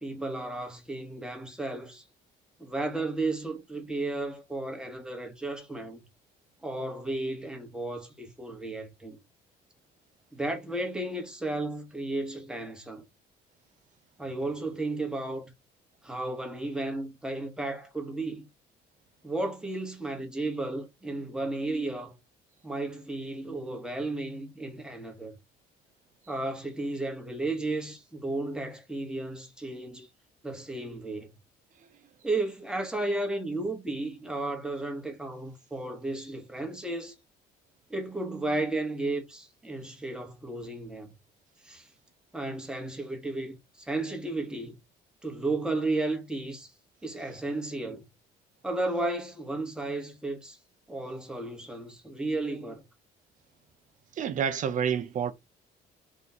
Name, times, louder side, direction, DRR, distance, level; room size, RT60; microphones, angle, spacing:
voice 1, 0.0-2.0 2.6-6.1 6.6-9.2 10.3-13.0 14.2-15.4 16.0-18.5 19.2-22.2 22.6-25.4 26.3-30.1 30.4-31.3 32.2-37.1 37.9-41.1 41.6-41.9 42.3-44.8 45.2-46.7 47.0-48.0 48.6-50.6 50.9-52.8, right 2 dB, 5° right, 1.2 m, -33 dB
voice 2, 54.2-55.3, right 8 dB, 50° right, 0.6 m, -28 dB
3.7 x 2.5 x 4.2 m
cardioid pair, 110°, 17 cm